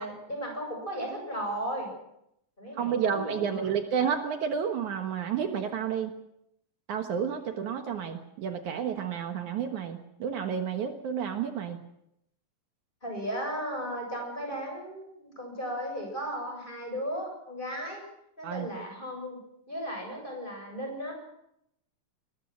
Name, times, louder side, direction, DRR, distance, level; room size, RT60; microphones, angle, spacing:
voice 1, 0.0-2.0 2.6-3.7 13.0-18.0 18.4-19.4 19.7-21.1, equal, 15° left, 2 dB, 7.8 m, -35 dB
voice 2, 2.8-6.1 6.9-11.8 18.4-18.7, right 7 dB, 70° right, 5 dB, 2.8 m, -31 dB
21.5 x 21.5 x 6.3 m, 0.79 s
omnidirectional pair, 3.7 m